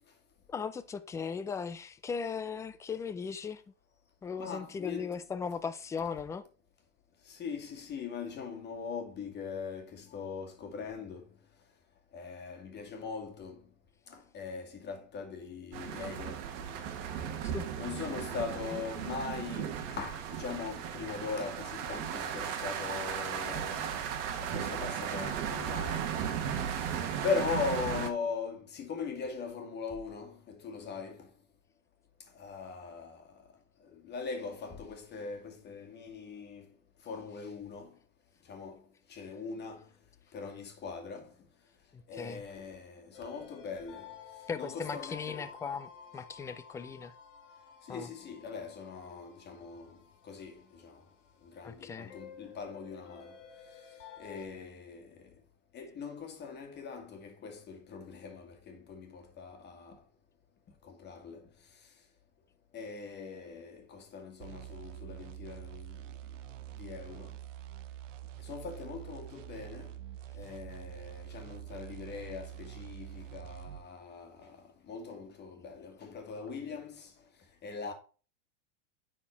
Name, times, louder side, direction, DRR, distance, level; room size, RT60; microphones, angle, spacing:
voice 1, 0.5-3.6 4.2-6.4 17.5-17.7 41.9-42.4 44.5-47.1 47.9-48.1 51.6-52.2, left 6 dB, 10° left, 0.4 m, -38 dB
voice 2, 4.4-5.2 7.2-11.3 12.1-13.7 14.1-16.8 17.8-23.9 24.4-26.2 26.7-31.3 32.3-33.4 33.8-36.7 37.0-37.9 38.4-38.8 39.1-39.9 40.3-41.3 42.1-44.1 44.6-45.5 47.8-50.0 50.2-51.0 51.4-53.4 54.2-55.3 55.7-60.0 60.8-61.5 62.7-66.1 66.7-67.4 68.4-70.0 70.3-77.1 77.6-77.9, left 5 dB, 30° left, 2.2 m, -40 dB
sound 1, 15.7-28.1, right 8 dB, 55° right, 1.6 m, -36 dB
sound 2, 43.1-54.5, left 7 dB, 80° left, 2.1 m, -53 dB
sound 3, 64.4-73.9, right 12 dB, 85° right, 0.8 m, -46 dB
9.5 x 4.4 x 4.5 m
supercardioid pair, 125°, 37 cm